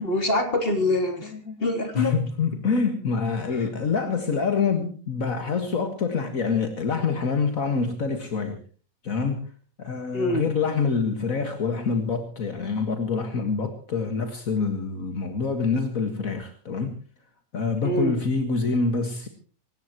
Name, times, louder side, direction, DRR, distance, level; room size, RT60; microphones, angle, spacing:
voice 1, 0.0-1.3 1.6-2.2 10.1-10.5 17.8-18.2, left 2 dB, 40° left, 5 dB, 3.7 m, -24 dB
voice 2, 1.9-8.6 9.0-9.4 9.8-17.0 17.5-19.3, left 5 dB, 70° left, 6 dB, 2.1 m, -26 dB
23.5 x 18.5 x 3.0 m, 0.41 s
omnidirectional pair, 1.5 m